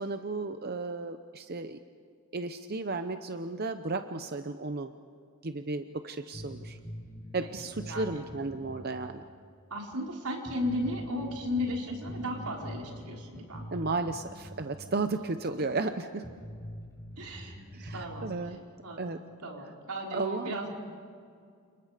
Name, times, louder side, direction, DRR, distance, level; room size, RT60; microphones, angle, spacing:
voice 1, 0.0-1.8 2.3-4.9 5.4-6.8 7.3-9.2 13.7-16.3 17.7-18.6 19.0-19.2 20.1-20.5, right 3 dB, 45° right, 8 dB, 0.8 m, -34 dB
sound 1, 6.3-8.9 9.2-9.3 9.9-10.0 10.4-14.7 15.0-15.1 15.7-15.8 16.2-18.3, equal, 15° left, 4.9 m, -44 dB
voice 2, 7.8-8.2 9.7-13.9 17.2-18.3 18.8-20.7, left 1 dB, 85° right, -1 dB, 4.5 m, -35 dB
30.0 x 28.5 x 5.1 m, 2.3 s
head